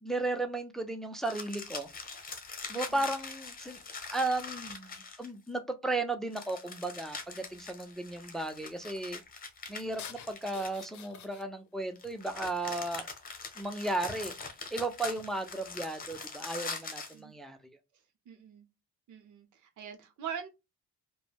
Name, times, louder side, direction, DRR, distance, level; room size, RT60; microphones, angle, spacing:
voice 1, 0.0-1.9 2.7-3.8 4.1-9.2 9.7-13.1 13.6-14.3 14.7-17.6, right 2 dB, ahead, 0.4 m, -35 dB
sound 1, 1.2-5.5 6.3-11.2 12.0-17.2, left 4 dB, 30° left, 0.8 m, -43 dB
sound 2, 9.8-11.7 12.0-13.3 14.1-14.6 15.0-15.4 16.1-16.6, left 8 dB, 75° left, 0.6 m, -51 dB
voice 2, 16.7-17.3 18.3-18.7 19.1-20.5, right 8 dB, 75° right, 0.8 m, -43 dB
3.2 x 2.1 x 2.3 m
cardioid pair, 90°, 30 cm